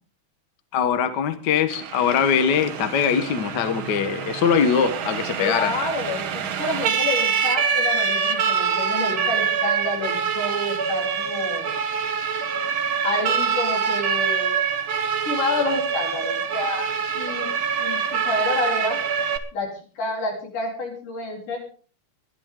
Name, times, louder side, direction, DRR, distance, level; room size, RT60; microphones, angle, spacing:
voice 1, 0.7-5.8, left 7 dB, 55° left, 1.2 m, -22 dB
Siren, 1.7-19.4, right 7 dB, 60° right, 1.5 m, -25 dB
voice 2, 5.4-11.7 13.0-14.6 15.3-16.9 17.1-17.5 17.8-19.0 19.5-19.7 20.0-21.6, left 2 dB, 80° left, 5.3 m, -29 dB
21.0 x 12.0 x 3.8 m
omnidirectional pair, 3.6 m